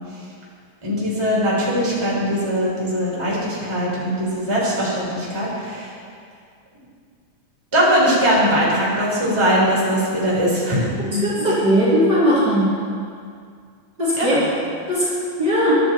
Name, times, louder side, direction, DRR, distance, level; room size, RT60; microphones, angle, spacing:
voice 1, 0.8-5.9 7.7-11.5 14.1-14.5, equal, 10° right, -6 dB, 4.4 m, -21 dB
voice 2, 11.2-12.7 14.0-14.3 14.9-15.0 15.4-15.8, equal, 30° right, -10 dB, 4.4 m, -18 dB
23.0 x 12.0 x 4.6 m, 2.2 s
omnidirectional pair, 3.6 m